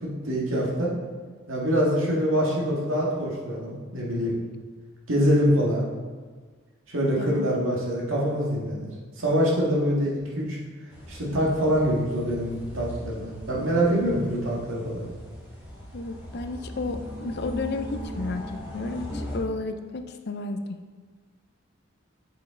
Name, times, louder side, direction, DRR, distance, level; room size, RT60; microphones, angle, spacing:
voice 1, 0.0-0.9 1.5-4.3 5.1-5.8 6.9-8.9 9.2-10.6 11.1-15.0, equal, 80° right, -4 dB, 1.8 m, -25 dB
voice 2, 7.2-7.5 15.9-20.8, left 3 dB, 55° left, 8 dB, 0.5 m, -32 dB
sound 1, 10.9-19.3, equal, 10° right, 1.9 m, -39 dB
7.7 x 5.3 x 3.7 m, 1.5 s
head